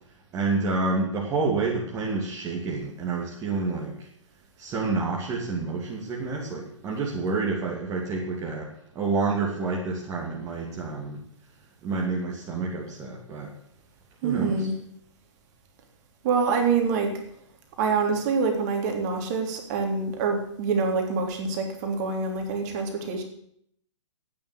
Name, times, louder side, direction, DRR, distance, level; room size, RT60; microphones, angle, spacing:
voice 1, 0.3-4.1 4.6-11.2 11.8-13.5 14.2-14.6, right 3 dB, 20° right, -3 dB, 2.6 m, -28 dB
voice 2, 14.2-14.7 16.2-17.1 17.8-23.2, right 4 dB, 35° right, 3 dB, 3.4 m, -26 dB
14.0 x 9.5 x 8.0 m, 0.69 s
figure-of-eight pair, 120°, 16 cm